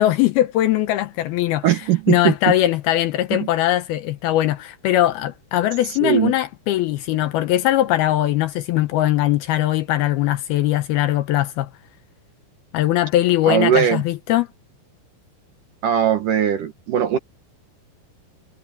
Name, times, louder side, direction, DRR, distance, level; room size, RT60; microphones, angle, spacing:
voice 1, 0.0-11.7 12.7-14.5, left 14 dB, 75° left, 2.5 m, -20 dB
voice 2, 1.6-2.3 6.0-6.3 13.5-14.0 15.8-17.2, right 9 dB, 65° right, 2.5 m, -19 dB
omnidirectional pair, 5.0 m